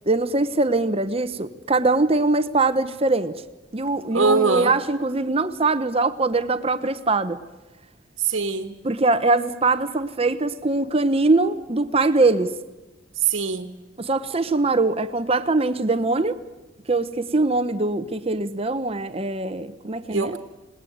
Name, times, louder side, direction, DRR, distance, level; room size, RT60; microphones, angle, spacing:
voice 1, 0.1-3.4 3.7-7.4 8.8-12.5 14.0-16.4 16.9-20.4, right 3 dB, 30° right, 0.9 m, -22 dB
voice 2, 4.1-4.7 8.2-8.7 13.2-13.7 20.1-20.4, right 4 dB, 80° right, 1.5 m, -22 dB
28.0 x 19.5 x 9.4 m
head